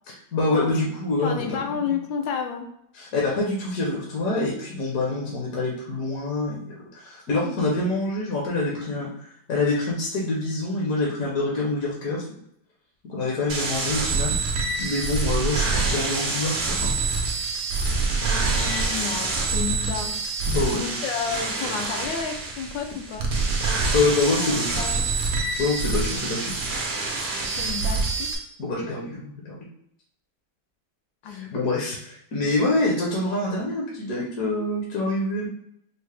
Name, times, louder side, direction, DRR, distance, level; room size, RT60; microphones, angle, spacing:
voice 1, 0.3-1.6 2.9-12.2 13.0-14.5 14.8-16.9 20.5-20.8 23.9-24.8 25.6-26.5 28.6-29.6 31.2-35.5, left 2 dB, 60° left, -3 dB, 1.1 m, -26 dB
voice 2, 1.2-2.7 18.1-20.2 20.7-23.3 24.2-25.1 27.5-28.3 31.2-31.5, left 6 dB, 80° left, 3 dB, 1.3 m, -31 dB
sound 1, 13.5-28.4, right 3 dB, 80° right, 0.6 m, -26 dB
4.5 x 2.0 x 3.3 m, 0.74 s
omnidirectional pair, 2.1 m